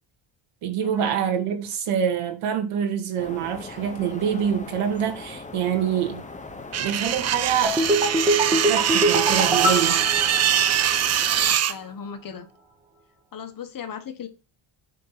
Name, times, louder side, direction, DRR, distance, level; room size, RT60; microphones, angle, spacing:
voice 1, 0.6-6.2 6.8-7.8 8.5-10.1, right 8 dB, 80° right, 2.2 m, -25 dB
sound 1, 3.2-11.6, left 3 dB, 15° left, 0.9 m, -40 dB
sound 2, 6.7-11.7, right 10 dB, 35° right, 0.4 m, -23 dB
sound 3, 7.6-11.1 11.4-11.5, right 1 dB, 10° right, 1.6 m, -23 dB
voice 2, 11.3-12.5 13.3-14.3, left 7 dB, 40° left, 1.3 m, -37 dB
8.4 x 3.8 x 5.9 m
cardioid pair, 120°, 50 cm